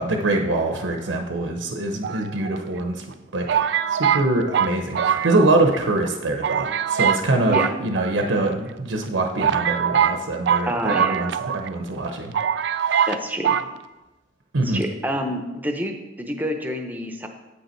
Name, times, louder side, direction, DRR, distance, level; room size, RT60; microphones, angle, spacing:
voice 1, 0.0-3.0 3.3-12.3 12.8-13.1 14.5-14.8, right 2 dB, 85° right, 3 dB, 0.8 m, -24 dB
sound 1, 2.0-2.8 3.5-5.8 6.1-6.2 6.4-7.2 7.5-8.5 9.0-9.1 9.4-11.7 12.0-12.1 12.3-13.2 13.4-13.7, right 8 dB, 60° right, 0.3 m, -23 dB
voice 2, 10.7-11.2 13.1-13.6 14.6-17.3, equal, 10° right, 4 dB, 0.6 m, -28 dB
8.3 x 5.5 x 4.4 m, 1.1 s
head